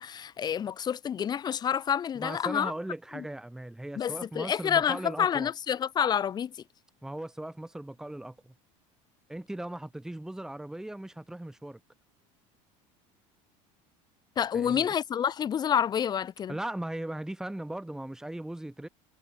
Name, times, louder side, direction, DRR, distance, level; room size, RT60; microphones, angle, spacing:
voice 1, 0.0-2.7 3.1-3.2 4.0-6.5 14.4-16.6, left 8 dB, 25° left, 0.5 m, -28 dB
voice 2, 2.1-5.5 7.0-8.5 9.3-11.8 14.5-14.9 16.5-18.9, right 1 dB, 5° right, 0.8 m, -38 dB
supercardioid pair, 125°, 16 cm